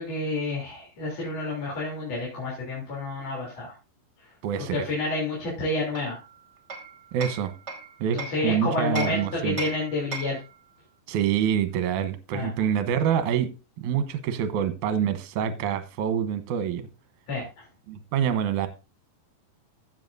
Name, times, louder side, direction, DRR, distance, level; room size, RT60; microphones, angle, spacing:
voice 1, 0.0-3.7 4.7-6.2 8.1-10.4 12.3-12.5 17.3-17.4, left 2 dB, 45° left, 4.3 m, -29 dB
voice 2, 4.4-4.9 7.1-7.5 8.0-8.2 8.4-9.6 11.1-13.5 13.8-16.9 17.9-18.7, right 8 dB, 65° right, 2.2 m, -26 dB
Hammer, 5.9-8.5 9.0-10.5, right 4 dB, 25° right, 1.7 m, -37 dB
15.5 x 7.5 x 2.7 m
omnidirectional pair, 4.4 m